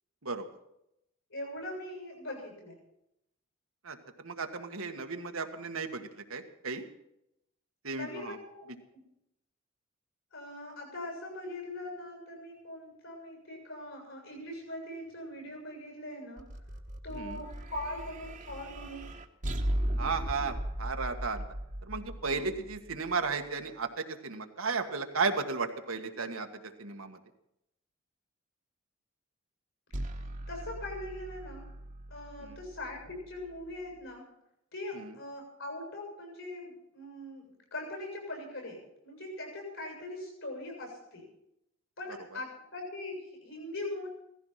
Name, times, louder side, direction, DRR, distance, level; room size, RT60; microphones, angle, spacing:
voice 1, 1.3-2.8 7.9-8.7 8.9-9.1 10.3-16.4 17.0-19.1 22.2-22.5 30.2-31.7 32.1-34.3 34.7-41.3 42.0-44.1, left 1 dB, 75° left, 2 dB, 7.4 m, -41 dB
voice 2, 3.8-6.9 7.8-8.4 17.1-17.4 20.0-21.4 21.8-27.2 32.4-32.6 34.9-35.1, right 4 dB, 90° right, 5 dB, 1.8 m, -34 dB
sound 1, 16.4-23.7 29.9-34.0, right 1 dB, 40° right, 1.3 m, -38 dB
17.0 x 14.5 x 5.9 m, 0.81 s
head